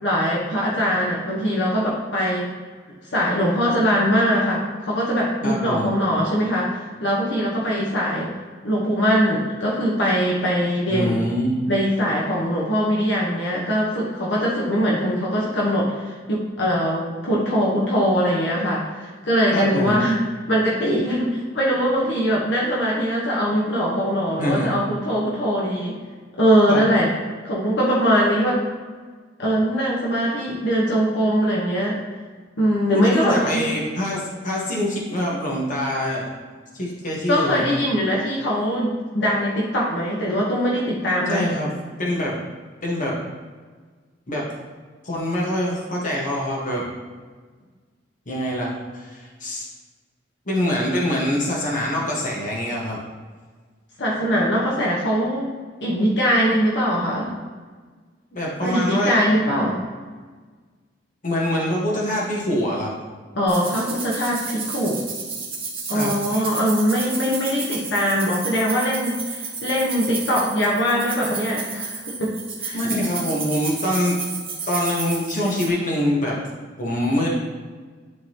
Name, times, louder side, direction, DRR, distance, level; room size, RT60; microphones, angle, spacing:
voice 1, 0.0-2.5 3.1-8.3 8.6-11.3 11.7-20.2 20.5-26.0 26.4-27.2 27.4-28.6 29.4-32.0 32.6-33.6 37.3-41.5 54.0-57.3 58.6-59.8 63.3-65.0 65.9-72.3 72.6-72.8, equal, 65° left, -5 dB, 1.2 m, -22 dB
voice 2, 5.4-5.9 10.9-11.6 19.5-20.0 24.4-24.8 26.7-26.9 32.9-36.3 36.7-37.8 41.3-41.7 42.0-42.4 42.8-43.2 44.3-44.4 45.0-46.8 48.2-49.7 50.4-53.0 58.3-59.2 61.2-62.9 65.9-66.2 72.7-74.2 74.7-76.4 76.8-77.3, left 1 dB, 45° left, -3 dB, 1.5 m, -24 dB
sound 1, 63.5-75.7, right 4 dB, 30° right, 1.8 m, -32 dB
10.5 x 4.0 x 3.0 m, 1.5 s
head